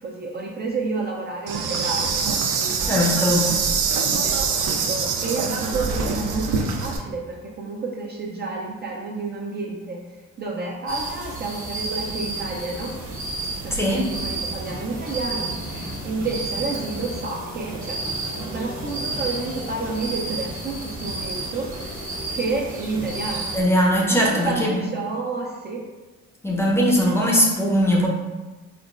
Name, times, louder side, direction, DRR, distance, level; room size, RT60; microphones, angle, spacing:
voice 1, 0.0-3.6 4.2-10.0 10.4-12.9 13.6-18.0 18.4-22.0 22.3-23.6 24.1-25.8 27.1-27.3, right 3 dB, 35° right, -2 dB, 0.4 m, -30 dB
Insect, 1.5-7.0, right 5 dB, 85° right, 0.5 m, -24 dB
voice 2, 2.9-3.5 13.7-14.1 23.5-24.8 26.4-28.1, equal, 10° left, -3 dB, 0.6 m, -20 dB
sound 1, 10.9-23.6, right 2 dB, 70° right, 1.1 m, -31 dB
3.7 x 2.1 x 2.4 m, 1.2 s
cardioid pair, 90°, 30 cm